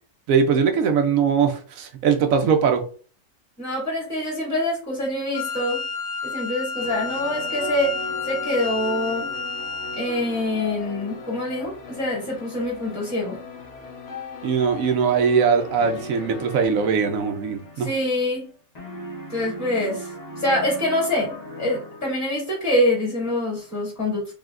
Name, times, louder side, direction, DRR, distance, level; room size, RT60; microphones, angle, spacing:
voice 1, 0.3-2.8 14.4-17.9, right 6 dB, 65° right, 6 dB, 1.1 m, -21 dB
voice 2, 3.6-5.8 6.2-7.9 8.3-9.3 9.9-13.4 17.8-18.5 19.3-24.3, left 1 dB, 10° left, -3 dB, 2.3 m, -25 dB
Wind instrument woodwind instrument, 5.3-10.2, left 4 dB, 85° left, 0.4 m, -30 dB
sound 1, 6.8-16.6, left 4 dB, 55° left, 1.3 m, -38 dB
sound 2, 15.7-18.5 18.7-22.4, right 1 dB, 30° left, 1.1 m, -39 dB
5.0 x 3.3 x 2.5 m, 0.39 s
omnidirectional pair, 1.6 m